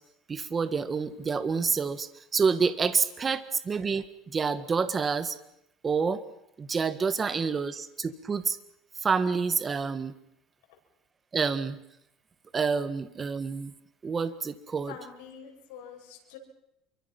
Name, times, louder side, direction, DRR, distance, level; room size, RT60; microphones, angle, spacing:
voice 1, 0.3-5.4 5.8-6.2 6.6-8.6 9.0-10.1 11.3-11.8 12.5-13.7 14.0-14.9, right 5 dB, 20° right, 12 dB, 1.5 m, -28 dB
voice 2, 14.9-16.4, left 8 dB, 85° left, 0 dB, 7.3 m, -45 dB
27.5 x 23.5 x 6.0 m, 0.79 s
cardioid pair, 140°, 0 cm